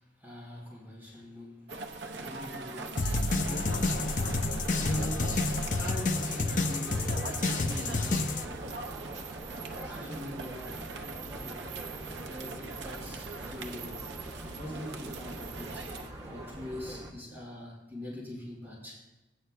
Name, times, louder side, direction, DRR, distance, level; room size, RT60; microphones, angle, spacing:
voice 1, 0.0-1.8 2.1-3.4 3.7-8.9 9.6-10.9 11.2-11.7 12.2-14.1 14.4-15.9 16.3-19.0, left 1 dB, 15° right, -5 dB, 3.5 m, -43 dB
sound 1, 1.7-16.1, right 3 dB, 80° right, 0.7 m, -41 dB
Shifter fizz, 3.0-8.4, left 2 dB, 45° left, 0.6 m, -29 dB
sound 2, 5.5-17.1, right 1 dB, 35° right, 2.2 m, -44 dB
16.0 x 9.8 x 2.2 m, 0.99 s
head